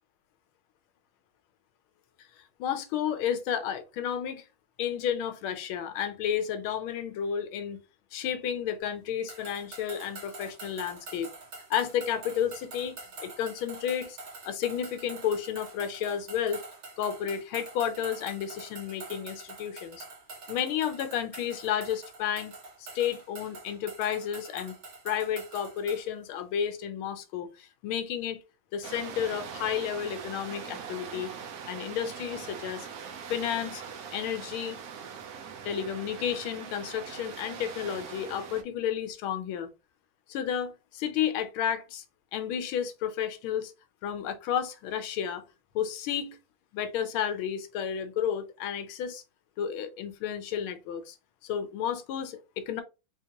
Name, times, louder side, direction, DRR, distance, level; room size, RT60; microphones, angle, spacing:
voice 1, 2.6-4.4 4.8-7.8 8.1-11.3 11.7-14.2 14.4-16.6 17.0-20.1 20.5-22.5 22.8-24.7 25.0-28.4 28.7-31.3 31.7-32.9 33.3-33.8 34.1-34.8 35.6-39.7 40.3-42.0 42.3-43.7 44.0-45.4 45.7-46.4 46.7-49.2 49.6-51.2 51.4-52.8, left 9 dB, 80° left, 1.5 m, -32 dB
sound 1, 9.3-26.1, right 3 dB, 50° right, 1.3 m, -46 dB
sound 2, 28.8-38.6, right 7 dB, 75° right, 0.8 m, -42 dB
4.0 x 2.9 x 2.8 m
omnidirectional pair, 2.3 m